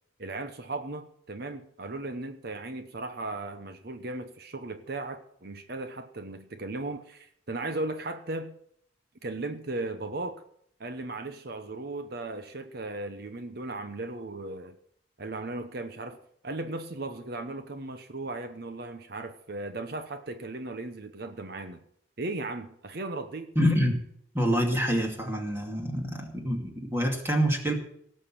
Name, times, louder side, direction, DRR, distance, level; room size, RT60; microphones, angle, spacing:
voice 1, 0.2-8.5 9.2-10.4 10.8-14.8 15.2-16.2 16.4-21.8 22.2-23.5, right 2 dB, 55° right, 8 dB, 0.9 m, -36 dB
voice 2, 23.6-24.0 24.3-27.7, equal, 15° right, 1 dB, 2.5 m, -26 dB
18.0 x 6.6 x 7.6 m, 0.68 s
head